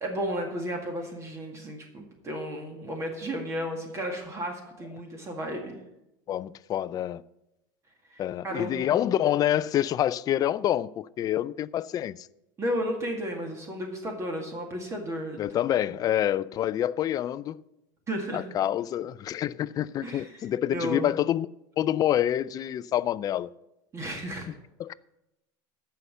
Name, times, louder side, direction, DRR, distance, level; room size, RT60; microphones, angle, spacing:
voice 1, 0.0-5.8 8.1-9.1 12.6-15.5 18.1-18.5 20.0-20.3 20.7-21.1 23.9-24.5, equal, 25° right, 2.0 m, -33 dB
voice 2, 6.3-7.2 8.2-12.3 15.4-17.6 18.3-21.5 21.8-23.5 24.5-24.9, left 11 dB, 35° left, 0.4 m, -27 dB
14.0 x 5.7 x 6.8 m
supercardioid pair, 115°, 11 cm